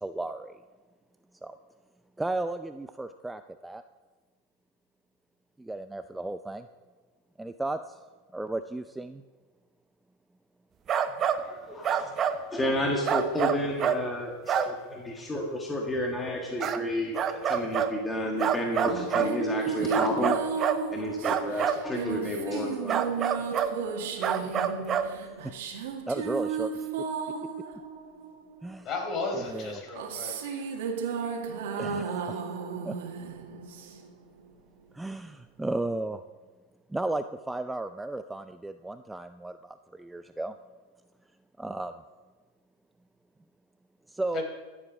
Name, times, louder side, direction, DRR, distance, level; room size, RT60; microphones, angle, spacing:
voice 1, 0.0-0.6 1.4-1.6 2.2-3.8 5.6-6.7 7.4-8.0 8.3-9.2 11.9-12.0 25.4-25.5 26.1-26.9 28.6-28.9 29.3-29.8 31.8-32.4 32.8-33.0 34.9-36.2 36.9-40.5 41.6-41.9 44.1-44.4, right 2 dB, 5° right, 10 dB, 0.4 m, -34 dB
sound 1, 10.9-11.4 11.8-12.4 13.1-14.0 14.5-14.7 16.6-16.8 17.1-17.9 18.4-19.3 19.9-20.8 21.2-21.8 22.9-23.7 24.2-25.1, right 8 dB, 35° right, 0.9 m, -26 dB
voice 2, 11.4-12.2 12.5-20.4 20.9-23.0, left 1 dB, 15° left, 0 dB, 1.7 m, -31 dB
sound 2, 18.8-28.7 29.5-34.2, right 5 dB, 75° right, 1.9 m, -34 dB
voice 3, 28.8-30.6 44.3-44.4, left 3 dB, 40° left, 2 dB, 4.5 m, -34 dB
14.5 x 7.5 x 6.3 m, 1.3 s
hypercardioid pair, 115°, 0 cm